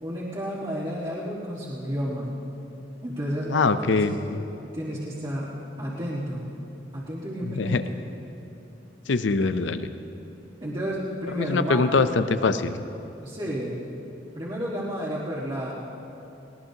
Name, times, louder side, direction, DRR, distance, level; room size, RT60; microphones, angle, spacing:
voice 1, 0.0-2.3 3.0-4.2 4.7-5.5 5.8-6.4 6.9-7.8 10.6-12.1 13.2-13.8 14.3-15.7, equal, 30° right, -8 dB, 1.6 m, -31 dB
voice 2, 3.5-4.4 7.4-7.8 9.1-9.9 11.3-12.8, left 4 dB, 80° left, 11 dB, 0.6 m, -23 dB
20.0 x 18.0 x 2.9 m, 2.9 s
head